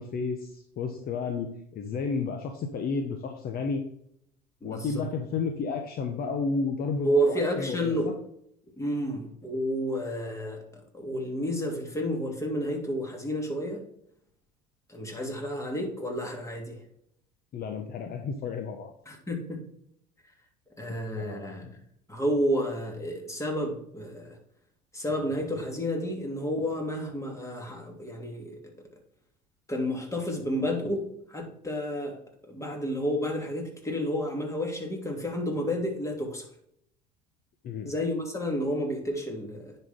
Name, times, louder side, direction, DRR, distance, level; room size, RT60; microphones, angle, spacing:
voice 1, 0.0-1.5 1.7-3.8 4.6-8.1 17.5-18.9 21.2-21.7 37.6-37.9, left 4 dB, 45° left, 4 dB, 1.1 m, -32 dB
voice 2, 4.6-5.1 7.0-8.1 8.8-13.8 14.9-16.8 19.1-19.6 20.8-21.8 22.1-24.4 24.9-28.6 29.7-32.2 32.5-36.5 37.8-39.8, equal, 15° left, 1 dB, 2.7 m, -30 dB
9.9 x 4.6 x 3.7 m, 0.70 s
hypercardioid pair, 75°, 21 cm